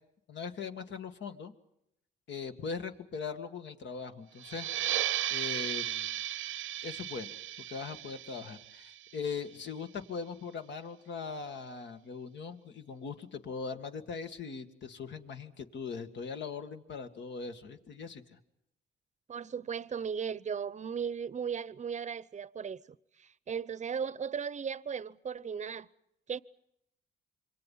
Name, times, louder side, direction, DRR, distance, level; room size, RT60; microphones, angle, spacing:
voice 1, 0.3-1.5 2.3-4.7 5.3-6.1 6.8-7.3 7.7-18.4, left 5 dB, 65° left, 2.1 m, -40 dB
sound 1, 4.4-9.7, right 13 dB, 80° right, 0.9 m, -36 dB
voice 2, 19.3-22.8 23.2-25.9 26.3-26.4, right 7 dB, 35° right, 0.8 m, -36 dB
27.5 x 24.5 x 5.6 m
cardioid pair, 90°, 20 cm